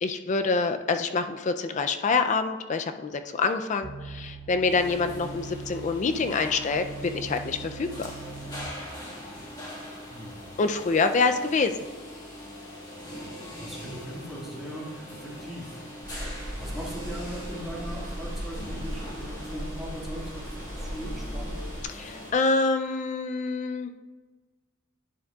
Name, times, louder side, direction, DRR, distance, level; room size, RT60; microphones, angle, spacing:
voice 1, 0.0-6.9 7.1-7.9 10.6-11.7 21.9-24.0, left 4 dB, 35° left, 8 dB, 0.4 m, -26 dB
sound 1, 3.8-9.0 9.6-9.7, right 4 dB, 40° right, 0.4 m, -42 dB
sound 2, 4.7-22.3, equal, 20° left, 1.6 m, -41 dB
voice 2, 13.6-16.3 16.6-21.5, equal, ahead, -6 dB, 1.8 m, -39 dB
sound 3, 16.0-21.8, equal, 55° right, 2.6 m, -37 dB
10.5 x 7.3 x 2.3 m, 1.3 s
head